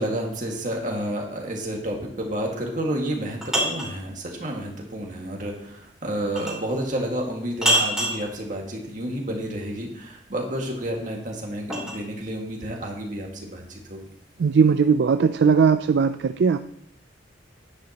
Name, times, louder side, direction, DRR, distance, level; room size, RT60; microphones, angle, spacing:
voice 1, 0.0-14.0, right 1 dB, 45° right, 0 dB, 1.9 m, -30 dB
sound 1, 3.0-4.0 6.4-6.7 7.6-8.2 10.5-12.0, equal, 5° right, 3.1 m, -25 dB
voice 2, 14.4-16.6, right 5 dB, 65° right, 9 dB, 0.3 m, -19 dB
10.5 x 9.8 x 2.9 m, 0.72 s
head